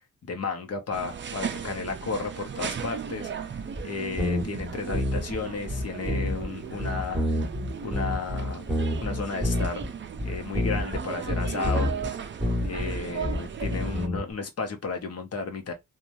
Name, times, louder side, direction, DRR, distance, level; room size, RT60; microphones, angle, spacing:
voice 1, 0.2-3.3 3.8-7.3 7.8-8.7 9.0-9.8 10.2-11.9 12.6-15.7, left 4 dB, 55° left, 0.8 m, -33 dB
sound 1, 0.9-14.1, right 7 dB, 40° right, 0.4 m, -36 dB
sound 2, 3.8-3.9 4.2-5.4 5.7-6.5 6.8-9.9 10.2-11.0 11.3-12.1 12.4-14.2, left 1 dB, 5° left, 1.5 m, -28 dB
3.1 x 2.3 x 2.6 m
wide cardioid pair, 155°, 31 cm